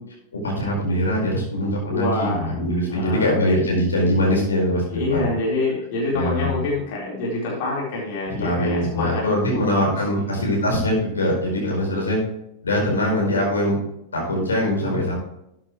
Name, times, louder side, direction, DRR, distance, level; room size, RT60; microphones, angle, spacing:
voice 1, 0.3-5.3 6.1-6.6 8.2-12.2 12.6-13.8 14.1-15.1, equal, 75° left, -2 dB, 4.8 m, -22 dB
voice 2, 1.8-2.5 2.9-3.4 4.9-10.3, left 2 dB, 45° left, -5 dB, 4.2 m, -26 dB
13.0 x 8.9 x 3.2 m, 0.79 s
figure-of-eight pair, 90°, 0 cm